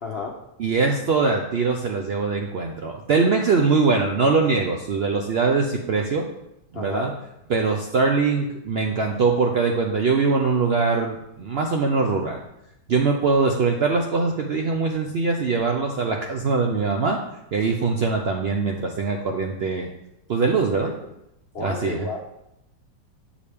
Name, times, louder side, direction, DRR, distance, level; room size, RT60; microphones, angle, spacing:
voice 1, 0.0-0.4 6.7-7.1 20.7-20.9 21.5-22.2, left 4 dB, 55° left, 1 dB, 0.7 m, -32 dB
voice 2, 0.6-6.3 6.7-7.1 7.5-12.4 12.9-17.2 17.5-19.9 20.3-20.9 21.6-22.1, right 4 dB, 85° right, 2 dB, 0.5 m, -22 dB
8.2 x 5.0 x 3.4 m, 0.83 s
omnidirectional pair, 1.8 m